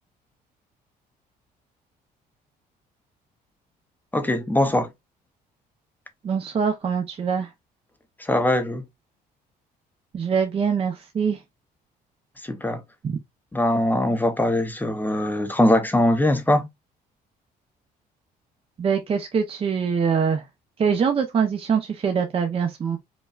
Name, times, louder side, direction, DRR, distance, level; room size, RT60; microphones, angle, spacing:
voice 1, 4.1-4.9 8.2-8.8 12.4-12.8 13.5-16.7, left 1 dB, 10° left, 0.6 m, -21 dB
voice 2, 6.2-7.5 10.1-11.4 13.0-13.2 18.8-20.4 20.8-23.0, right 6 dB, 35° right, 0.7 m, -23 dB
5.2 x 2.2 x 2.3 m
cardioid pair, 110°, 17 cm